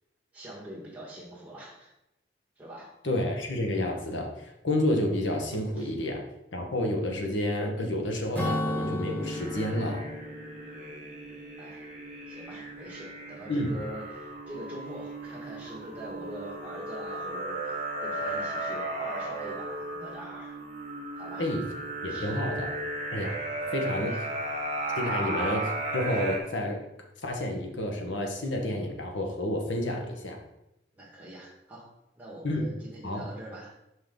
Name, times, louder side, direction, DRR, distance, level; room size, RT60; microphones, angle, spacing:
voice 1, 0.3-1.9 2.6-2.9 5.8-5.9 10.6-10.8 11.6-11.9 12.3-20.6 21.1-21.5 22.1-22.3 23.4-23.5 24.1-24.2 25.0-25.3 30.9-33.7, right 1 dB, 10° right, -5 dB, 1.7 m, -43 dB
voice 2, 3.0-4.3 4.6-6.2 6.5-10.0 13.5-13.7 21.4-21.6 22.0-22.7 23.1-23.4 23.7-24.1 25.0-26.8 27.2-30.4 32.4-32.6 33.0-33.3, left 1 dB, 85° left, 2 dB, 1.2 m, -30 dB
Acoustic guitar / Strum, 8.3-12.0, left 1 dB, 10° left, 0.8 m, -34 dB
sound 1, 9.2-26.4, right 2 dB, 40° right, 1.2 m, -35 dB
5.7 x 5.3 x 3.9 m, 0.87 s
head